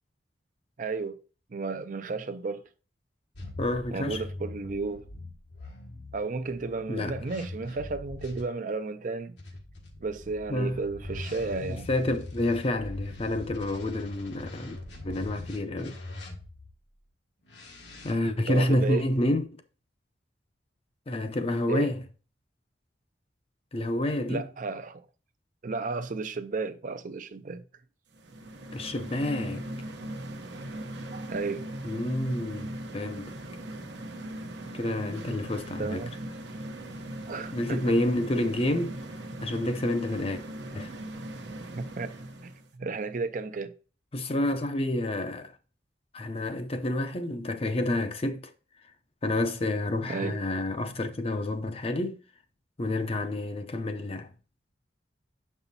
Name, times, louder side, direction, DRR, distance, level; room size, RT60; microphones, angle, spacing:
voice 1, 0.8-1.2 1.5-2.6 3.9-5.0 6.1-9.4 10.0-11.9 18.5-19.0 21.7-21.9 24.3-25.0 25.6-27.6 31.1-31.6 35.8-36.1 37.3-38.0 41.7-42.1 42.4-42.5 42.8-43.7 50.0-50.4, right 3 dB, 45° right, 0.5 m, -33 dB
sound 1, 3.3-8.4 9.4-16.7 17.5-18.1, left 2 dB, 80° left, 1.6 m, -42 dB
voice 2, 3.6-4.2 6.9-7.3 10.5-10.8 11.6-14.8 15.0-16.0 18.0-19.6 21.1-22.0 23.7-24.5 28.7-29.7 31.8-33.3 34.7-36.0 37.5-39.0 39.4-40.4 40.7-40.9 44.1-45.5 46.1-48.5 49.2-52.2 52.8-54.3, left 1 dB, 35° left, 0.6 m, -29 dB
sound 2, 28.1-42.7, right 1 dB, 75° right, 0.9 m, -39 dB
7.0 x 5.5 x 2.7 m
head